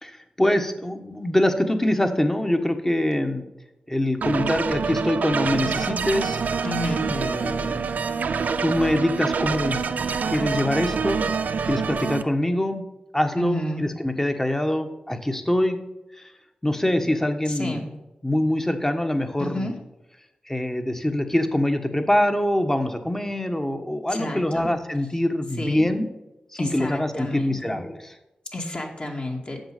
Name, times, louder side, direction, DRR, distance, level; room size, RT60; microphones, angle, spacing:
voice 1, 0.0-3.4 3.9-6.4 7.1-8.1 8.6-9.8 10.2-11.2 11.7-12.8 13.1-15.8 16.2-16.3 16.6-17.8 18.2-19.7 20.5-26.1 26.6-28.1, left 1 dB, 15° left, 6 dB, 1.3 m, -24 dB
sound 1, 4.2-12.2, right 5 dB, 80° right, 0.5 m, -26 dB
voice 2, 6.6-7.1 13.4-13.9 17.5-17.9 19.4-19.7 24.1-24.8 25.6-25.9 26.6-27.8 28.5-29.6, left 1 dB, 45° left, 0 dB, 2.3 m, -30 dB
7.9 x 6.3 x 6.6 m, 0.96 s
cardioid pair, 45°, 3 cm